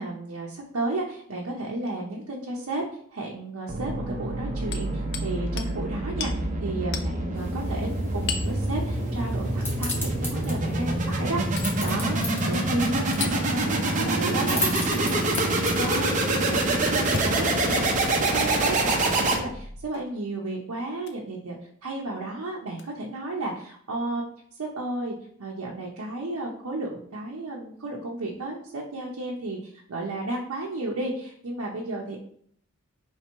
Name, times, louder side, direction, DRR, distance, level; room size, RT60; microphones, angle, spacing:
voice 1, 0.0-2.8 3.1-12.2 12.4-21.6 21.8-24.2 24.6-25.1 25.4-32.2, right 2 dB, 90° right, -2 dB, 0.7 m, -33 dB
sound 1, 3.7-19.8, right 2 dB, 35° right, 0.6 m, -26 dB
Hammer, 4.7-5.3 5.6-5.7 6.2-6.4 6.9-7.1 8.3-8.6 9.9-10.1 11.6-11.8 13.2-13.4 15.4-15.5 17.0-17.8 18.5-18.7 19.9-20.1 21.0-21.2 22.8-22.9, left 6 dB, 50° left, 0.5 m, -34 dB
sound 2, 7.3-17.0, left 1 dB, 10° left, 0.9 m, -37 dB
3.3 x 3.0 x 4.4 m, 0.62 s
head